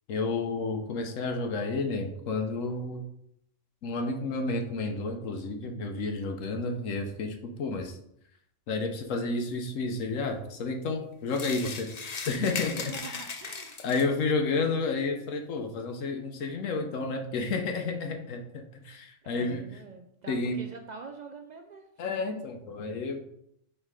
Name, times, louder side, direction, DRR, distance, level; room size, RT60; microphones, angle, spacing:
voice 1, 0.1-3.0 3.8-8.0 8.7-13.3 13.8-19.6 20.3-20.6 22.0-23.2, left 3 dB, 80° left, 4 dB, 1.1 m, -31 dB
sound 1, 11.3-14.2, left 4 dB, 40° left, 0.7 m, -38 dB
voice 2, 12.8-13.8 18.8-22.1, right 5 dB, 75° right, 5 dB, 0.4 m, -45 dB
5.5 x 3.7 x 4.7 m, 0.72 s
omnidirectional pair, 1.3 m